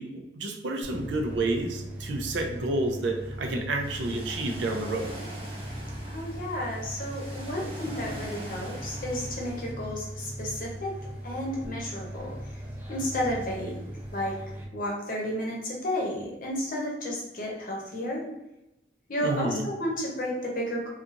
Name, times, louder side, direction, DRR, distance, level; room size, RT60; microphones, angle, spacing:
voice 1, 0.0-5.1 19.2-19.6, right 2 dB, 85° right, 4 dB, 0.5 m, -30 dB
sound 1, 0.8-14.6, equal, 10° right, 0.5 m, -39 dB
Ocean, 3.8-9.7, right 1 dB, 30° right, 0.8 m, -43 dB
voice 2, 6.1-10.9 11.2-12.3 12.9-13.8 14.1-14.4 14.7-18.2 19.1-20.9, equal, 50° left, -2 dB, 0.7 m, -32 dB
2.8 x 2.3 x 2.5 m, 0.93 s
head